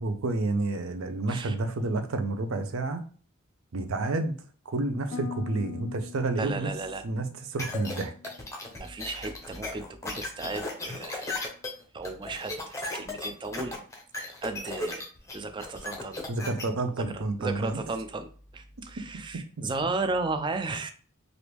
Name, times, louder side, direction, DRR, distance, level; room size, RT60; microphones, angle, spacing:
voice 1, 0.0-3.0 3.7-4.3 4.7-6.7 7.0-8.3 16.3-17.8, right 2 dB, 75° right, 8 dB, 0.5 m, -30 dB
Harp, 5.1-9.2 9.5-10.1 10.6-10.9, left 7 dB, 80° left, 0.5 m, -44 dB
voice 2, 6.4-7.0 8.8-11.3 11.9-13.8 14.4-16.2 17.1-18.3 18.5-20.9, right 3 dB, 20° right, 9 dB, 0.3 m, -34 dB
sound 1, 7.6-16.6, left 2 dB, 15° left, 0.6 m, -36 dB
3.4 x 2.5 x 3.0 m, 0.42 s
head